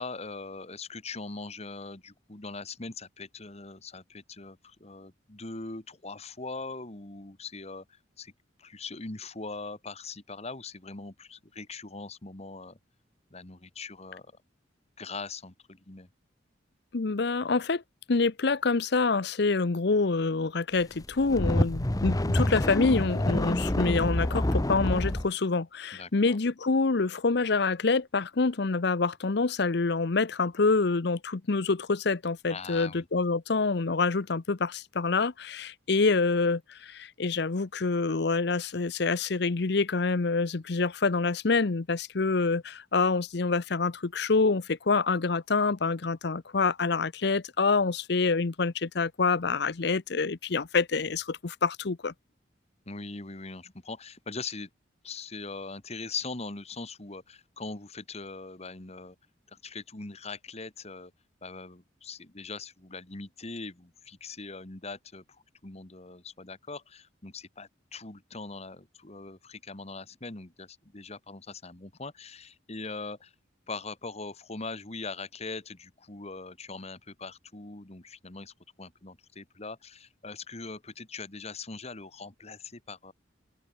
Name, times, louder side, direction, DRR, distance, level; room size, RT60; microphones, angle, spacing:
voice 1, 0.0-8.3 8.6-12.8 13.3-14.3 15.0-16.1 25.9-26.4 32.5-33.1 52.8-54.7 55.0-59.2 59.5-61.1 61.4-73.3 73.7-83.1, left 3 dB, 35° left, 1.8 m, -41 dB
voice 2, 16.9-17.8 18.1-52.1, left 4 dB, 60° left, 0.7 m, -26 dB
sound 1, 21.0-25.3, left 1 dB, 20° left, 0.9 m, -27 dB
open air
head